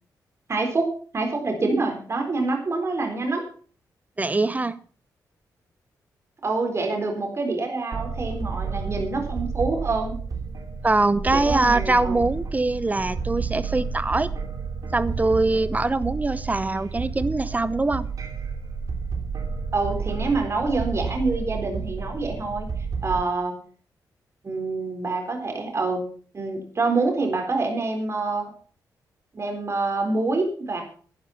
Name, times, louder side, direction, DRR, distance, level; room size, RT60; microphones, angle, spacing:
voice 1, 0.5-0.9 1.1-3.5 6.4-10.1 11.3-12.3 19.7-22.7 23.0-23.6 24.4-26.0 26.3-28.4 29.3-30.8, right 3 dB, 40° right, 3 dB, 3.9 m, -26 dB
voice 2, 4.2-4.8 10.8-14.3 14.9-18.1, right 2 dB, 20° right, 15 dB, 0.9 m, -23 dB
sound 1, 7.9-23.2, right 5 dB, 60° right, 2.7 m, -31 dB
11.5 x 10.0 x 5.7 m, 0.44 s
cardioid pair, 85°, 7 cm